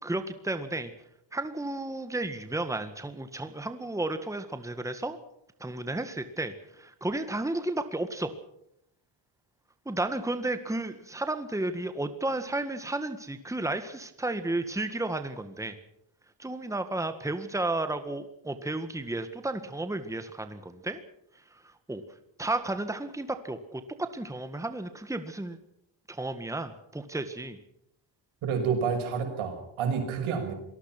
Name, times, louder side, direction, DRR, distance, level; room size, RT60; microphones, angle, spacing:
voice 1, 0.0-0.9 1.3-5.2 5.6-8.3 9.9-15.8 16.4-21.0 21.5-22.0 22.4-25.6 26.1-27.6, right 2 dB, 5° right, 9 dB, 1.8 m, -33 dB
voice 2, 28.4-30.5, right 6 dB, 90° right, 4 dB, 6.2 m, -29 dB
26.5 x 19.5 x 6.0 m, 0.76 s
cardioid pair, 110°, 48 cm